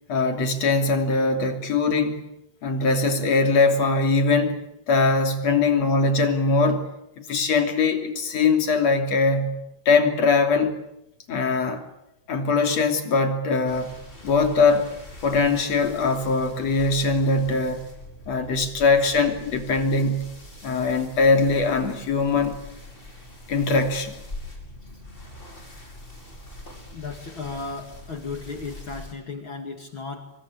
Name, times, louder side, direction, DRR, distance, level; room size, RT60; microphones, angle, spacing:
voice 1, 0.1-2.2 2.6-6.9 7.2-9.6 9.9-10.8 11.3-11.8 12.3-13.9 14.2-14.9 15.2-17.8 18.3-20.3 20.6-22.6 23.5-24.2, left 3 dB, 60° left, 5 dB, 4.1 m, -21 dB
sound 1, 13.7-29.1, left 1 dB, 15° left, 5.3 m, -43 dB
voice 2, 26.9-30.3, left 4 dB, 45° left, 5 dB, 2.7 m, -35 dB
25.5 x 24.5 x 8.7 m, 0.83 s
omnidirectional pair, 3.3 m